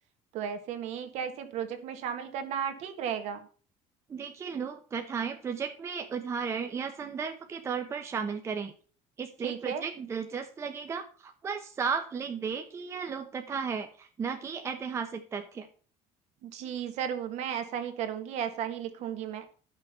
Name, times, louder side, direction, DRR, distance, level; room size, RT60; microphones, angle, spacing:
voice 1, 0.3-3.5 9.4-9.8 16.4-19.4, right 8 dB, 55° right, 7 dB, 1.7 m, -34 dB
voice 2, 4.1-8.7 9.2-15.7, right 6 dB, 20° right, 5 dB, 0.8 m, -34 dB
12.0 x 6.3 x 5.6 m, 0.41 s
cardioid pair, 175°, 14 cm